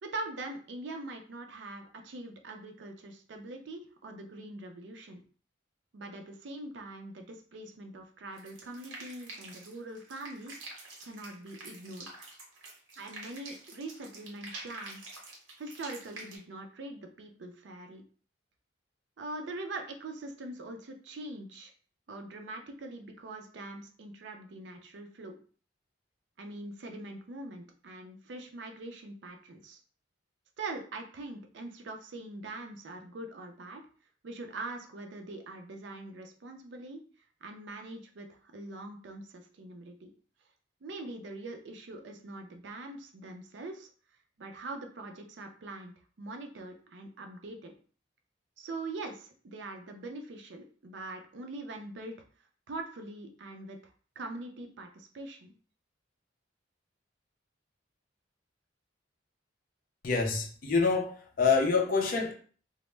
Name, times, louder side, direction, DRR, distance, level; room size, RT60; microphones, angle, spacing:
voice 1, 0.0-5.2 5.9-10.6 11.0-12.1 13.0-15.1 15.6-18.0 19.2-21.7 22.1-25.4 26.4-29.8 30.6-33.8 34.2-37.0 37.4-40.1 40.8-43.9 44.4-45.9 46.2-47.7 48.6-52.1 52.7-53.8 54.2-55.5, right 2 dB, 65° right, 0.4 m, -43 dB
sound 1, 8.4-16.4, right 2 dB, 85° right, 0.8 m, -47 dB
voice 2, 60.0-62.3, left 4 dB, 45° left, 0.4 m, -26 dB
2.1 x 2.0 x 3.1 m
head